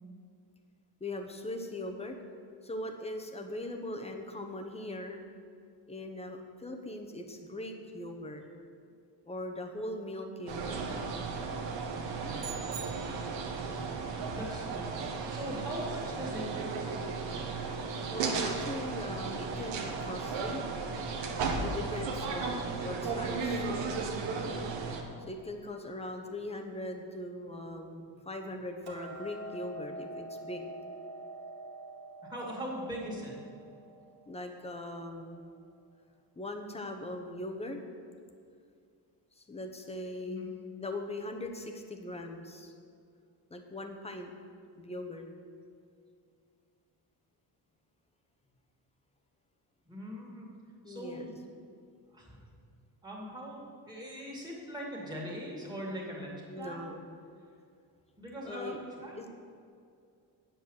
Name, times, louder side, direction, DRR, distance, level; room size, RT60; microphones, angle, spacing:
voice 1, 1.0-2.2 2.6-5.3 5.9-8.5 9.3-10.8 18.1-20.7 21.6-23.7 25.3-30.7 34.3-35.5 36.4-37.8 39.4-40.5 40.8-42.7 43.5-44.3 44.8-45.3 50.8-51.3 56.5-57.1 58.4-58.8 59.2-59.3, left 1 dB, 15° left, 4 dB, 0.9 m, -40 dB
sound 1, 10.5-25.0, right 4 dB, 85° right, 1.4 m, -35 dB
sound 2, 12.4-13.7, right 8 dB, 35° right, 0.9 m, -45 dB
voice 2, 14.3-16.9 32.2-33.3 40.2-40.5 49.9-50.5 50.9-51.4 52.1-52.5 53.0-56.9 58.2-59.3, equal, 10° right, -4 dB, 2.4 m, -41 dB
Hammer, 28.9-35.1, right 1 dB, 60° right, 2.1 m, -46 dB
9.2 x 8.2 x 6.4 m, 2.3 s
cardioid pair, 150°, 42 cm